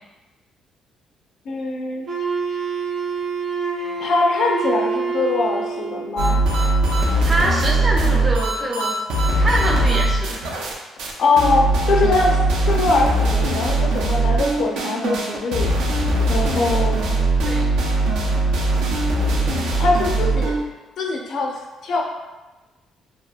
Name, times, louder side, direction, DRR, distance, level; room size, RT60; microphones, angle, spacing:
voice 1, 1.5-2.1 4.0-6.4 11.2-15.7 16.3-17.0 19.8-20.6 21.0-21.5 21.8-22.0, left 3 dB, 65° left, 1 dB, 0.4 m, -22 dB
Wind instrument woodwind instrument, 2.1-6.2, right 4 dB, 45° right, 0.8 m, -26 dB
sound 1, 6.2-10.7 11.0-11.1 11.4-20.6, right 2 dB, 85° right, 0.4 m, -20 dB
voice 2, 7.2-10.5 17.4-17.7, right 1 dB, 30° right, -1 dB, 0.4 m, -25 dB
2.8 x 2.2 x 2.3 m, 1.2 s
cardioid pair, 120°, 0 cm